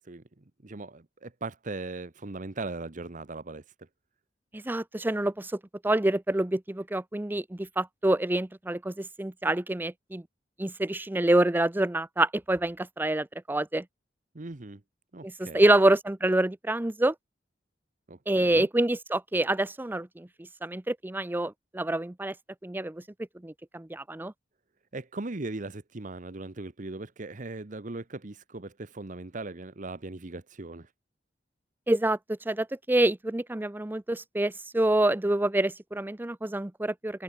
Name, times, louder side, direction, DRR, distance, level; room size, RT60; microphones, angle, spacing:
voice 1, 0.0-3.9 14.3-14.8 15.1-15.6 18.1-18.7 24.9-30.9, right 2 dB, 45° right, 1.0 m, -39 dB
voice 2, 4.5-10.2 10.6-13.8 15.2-17.1 18.3-20.3 20.6-22.3 22.6-23.0 23.4-24.3 31.9-37.2, right 1 dB, 10° right, 0.5 m, -27 dB
head